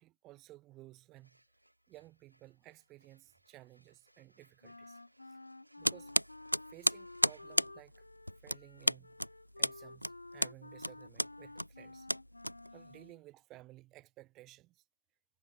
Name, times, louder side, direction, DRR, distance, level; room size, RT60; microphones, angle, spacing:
voice 1, 0.0-1.4 1.9-5.0 5.2-5.4 5.8-6.1 6.7-8.0 8.4-9.2 9.6-12.1 12.7-14.8, right 17 dB, 5° right, 0.4 m, -56 dB
sound 1, 1.0-8.5, right 1 dB, 80° right, 5.5 m, -69 dB
Wind instrument woodwind instrument, 4.6-13.2, left 2 dB, 55° left, 2.9 m, -52 dB
sound 2, 5.8-13.0, equal, 85° left, 0.7 m, -34 dB
figure-of-eight pair, 165°, 0 cm